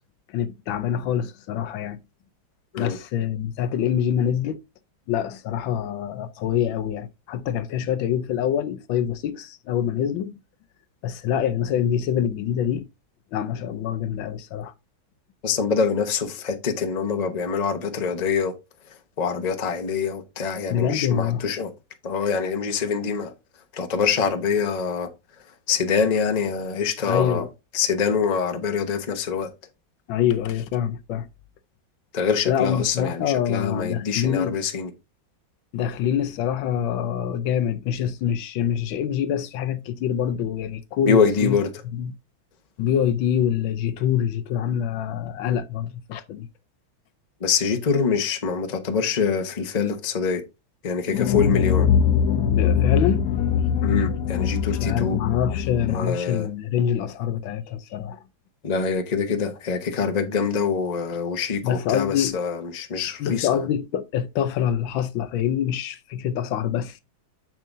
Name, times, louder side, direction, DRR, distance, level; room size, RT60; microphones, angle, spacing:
voice 1, 0.3-2.0 2.8-4.6 5.1-10.4 11.0-12.8 13.3-14.7 20.7-21.4 27.1-27.5 30.1-31.3 32.5-34.6 35.7-41.6 41.9-42.1 42.8-46.5 52.5-53.3 54.8-58.2 61.6-62.4 63.2-67.0, left 9 dB, 75° left, 1.4 m, -25 dB
voice 2, 15.4-18.5 19.2-21.7 22.0-23.3 23.7-25.1 25.7-27.4 27.7-29.5 32.1-34.9 41.1-41.7 47.4-50.4 50.8-51.9 53.8-55.2 55.9-56.5 58.6-63.7, left 5 dB, 30° left, 0.8 m, -25 dB
sound 1, 51.1-56.0, left 7 dB, 60° left, 1.0 m, -22 dB
7.5 x 7.4 x 2.6 m
omnidirectional pair, 2.2 m